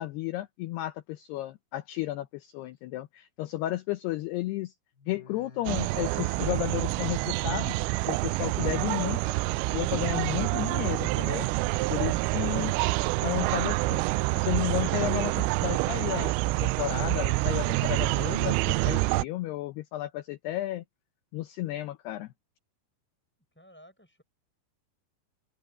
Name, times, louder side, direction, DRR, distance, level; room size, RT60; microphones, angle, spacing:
voice 1, 0.0-4.7 5.1-7.8 8.1-9.3 9.7-11.5 11.9-12.7 13.2-14.0 14.4-20.8 21.3-22.3, left 15 dB, 85° left, 2.3 m, -33 dB
sound 1, 4.9-10.3 10.6-11.2 11.7-12.4 12.8-13.4 13.9-14.5 15.0-15.6 16.1-16.2, left 3 dB, 55° left, 8.3 m, -55 dB
sound 2, 5.7-19.2, right 22 dB, 90° right, 3.1 m, -27 dB
voice 2, 13.4-13.9 14.6-15.0 23.5-24.2, equal, ahead, 6.4 m, -56 dB
open air
omnidirectional pair, 5.7 m